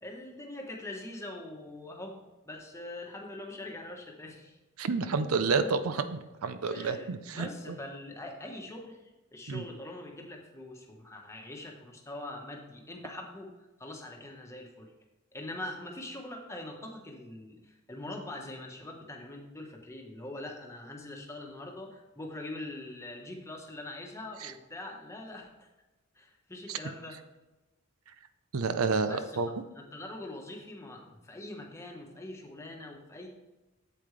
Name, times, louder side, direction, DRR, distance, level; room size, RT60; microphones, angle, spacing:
voice 1, 0.0-4.6 6.7-13.5 13.8-14.9 15.3-25.7 26.1-27.2 29.1-29.4 29.7-33.3, left 1 dB, 15° left, 1 dB, 1.2 m, -43 dB
voice 2, 4.8-7.8 9.5-9.6 24.4-24.5 26.7-26.8 28.5-29.5, right 4 dB, 80° right, 11 dB, 0.6 m, -30 dB
8.6 x 7.7 x 3.3 m, 1.1 s
head